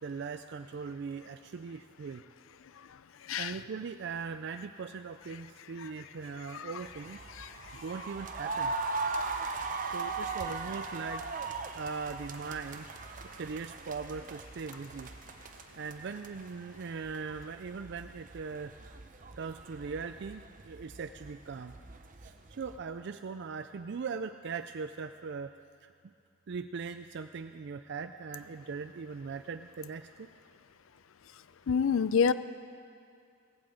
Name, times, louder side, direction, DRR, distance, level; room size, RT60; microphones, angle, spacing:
voice 1, 0.0-2.2 3.4-7.2 7.8-8.7 9.9-11.3 11.7-12.9 13.4-15.1 15.8-18.7 19.4-21.7 22.2-25.5 25.8-25.9 26.5-30.3, right 5 dB, 55° right, 9 dB, 0.4 m, -40 dB
sound 1, 6.8-22.8, right 4 dB, 40° right, 0.8 m, -40 dB
voice 2, 7.4-7.8 9.1-9.3 9.7-10.1 31.7-32.3, left 6 dB, 75° left, 14 dB, 0.4 m, -29 dB
17.0 x 8.6 x 7.7 m, 2.3 s
head